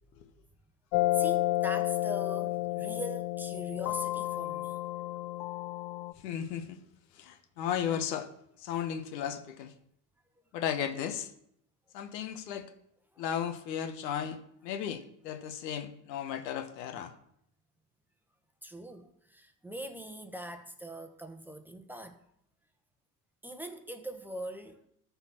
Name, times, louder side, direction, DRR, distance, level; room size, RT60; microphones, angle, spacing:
sound 1, 0.9-6.1, left 16 dB, 60° left, 0.6 m, -31 dB
voice 1, 1.1-4.8 12.1-12.2 13.1-13.2 18.6-22.2 23.4-24.9, equal, 5° right, 1.2 m, -42 dB
voice 2, 6.2-6.8 7.1-8.3 8.6-9.7 10.5-11.3 11.9-12.7 13.2-17.1, left 9 dB, 80° left, 1.4 m, -35 dB
13.0 x 4.5 x 5.9 m
hypercardioid pair, 95°, 49 cm